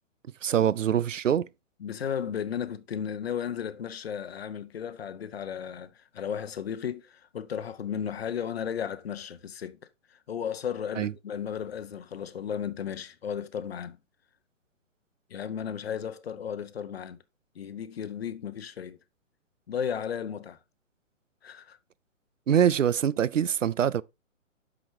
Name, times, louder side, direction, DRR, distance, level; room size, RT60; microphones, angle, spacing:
voice 1, 0.4-1.5 11.0-11.1 22.5-24.0, right 9 dB, 70° right, 0.5 m, -24 dB
voice 2, 1.8-9.8 10.1-14.0 15.3-17.2 17.5-19.0 19.7-20.6 21.4-21.8, left 8 dB, 50° left, 0.8 m, -34 dB
8.4 x 6.1 x 2.7 m
figure-of-eight pair, 125°, 39 cm